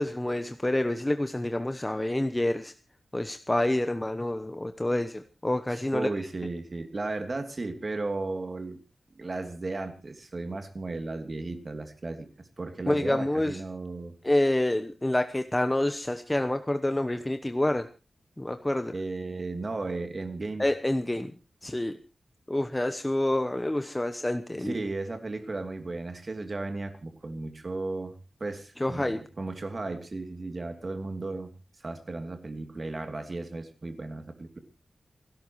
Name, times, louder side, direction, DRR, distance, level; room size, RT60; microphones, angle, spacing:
voice 1, 0.0-2.7 3.1-6.1 12.9-13.6 14.2-17.9 18.4-18.9 20.6-21.3 21.6-22.0 22.5-24.8 28.8-29.2, left 1 dB, 15° left, 8 dB, 1.0 m, -27 dB
voice 2, 5.7-8.8 9.2-12.3 12.6-14.1 18.9-20.6 24.6-31.5 31.8-34.6, right 3 dB, 40° right, 7 dB, 2.9 m, -35 dB
29.0 x 12.5 x 3.1 m, 0.33 s
wide cardioid pair, 110°, 0 cm